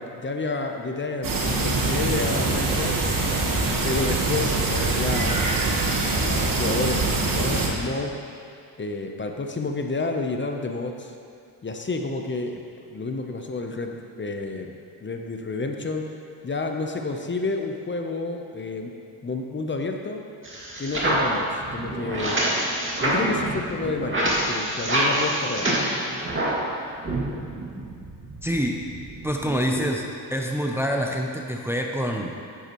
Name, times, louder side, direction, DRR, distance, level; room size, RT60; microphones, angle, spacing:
voice 1, 0.0-2.9 3.8-5.4 6.2-8.1 8.8-11.1 11.6-14.7 15.0-16.0 16.4-18.9 19.2-20.2 20.8-22.4 23.0-25.7, left 3 dB, 30° left, 3 dB, 0.8 m, -30 dB
sound 1, 1.2-7.7, right 3 dB, 50° right, 1.5 m, -24 dB
sound 2, 20.4-26.7 27.0-29.9, right 1 dB, 30° right, 2.2 m, -26 dB
voice 2, 28.4-28.8 29.2-30.0 30.3-32.4, equal, 5° right, 1 dB, 0.7 m, -26 dB
9.7 x 9.6 x 3.1 m, 2.3 s
cardioid pair, 80°, 41 cm